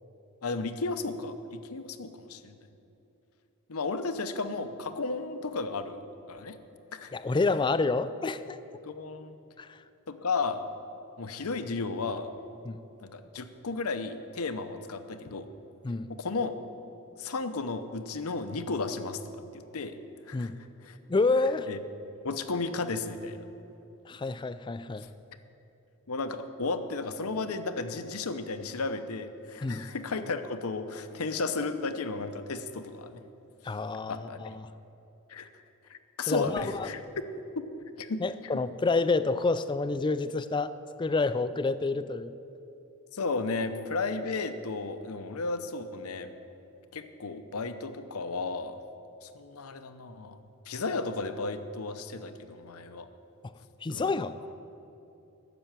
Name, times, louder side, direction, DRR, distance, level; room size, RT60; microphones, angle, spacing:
voice 1, 0.4-2.6 3.7-6.0 6.3-6.6 6.9-7.2 8.8-9.4 10.1-10.6 11.2-12.3 13.0-15.5 16.1-16.6 17.2-19.2 19.5-20.0 20.3-20.5 20.8-21.0 21.7-21.8 22.2-23.5 25.0-25.1 26.1-33.2 34.1-34.6 35.3-35.5 35.9-37.0 37.6-37.7 38.0-38.2 43.1-46.3 46.9-48.8 49.2-50.4 50.7-53.1 53.9-54.1, left 3 dB, 80° left, 9 dB, 0.8 m, -34 dB
voice 2, 7.1-8.6 9.6-9.8 12.6-12.8 15.8-16.1 20.3-20.6 21.1-21.7 24.1-25.1 29.6-29.9 33.6-34.7 36.3-36.9 38.2-42.3 53.4-53.5 53.8-54.3, left 3 dB, 20° left, 13 dB, 0.3 m, -28 dB
12.0 x 6.9 x 9.0 m, 2.9 s
head